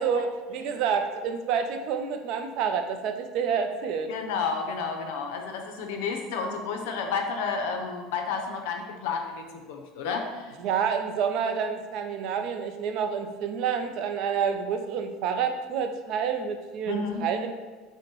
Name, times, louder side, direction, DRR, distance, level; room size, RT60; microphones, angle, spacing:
voice 1, 0.0-4.1 10.6-17.5, right 6 dB, 55° right, 7 dB, 0.3 m, -28 dB
voice 2, 4.1-10.5 16.9-17.3, left 5 dB, 80° left, 4 dB, 0.5 m, -31 dB
5.2 x 2.0 x 3.0 m, 1.3 s
cardioid pair, 145°, 0 cm